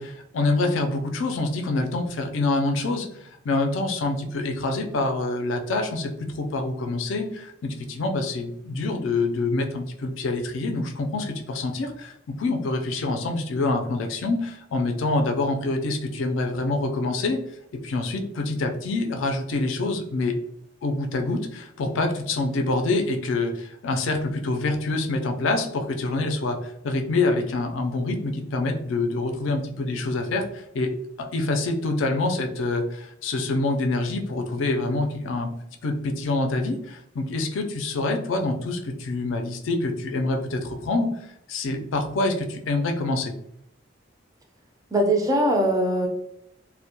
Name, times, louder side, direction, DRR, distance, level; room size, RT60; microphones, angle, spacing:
voice 1, 0.0-17.4 17.8-20.3 20.8-35.5 35.8-41.1 41.5-43.3, left 2 dB, 85° left, 4 dB, 0.4 m, -26 dB
voice 2, 44.9-46.1, right 1 dB, 20° right, 2 dB, 0.4 m, -21 dB
2.1 x 2.1 x 2.8 m, 0.76 s
head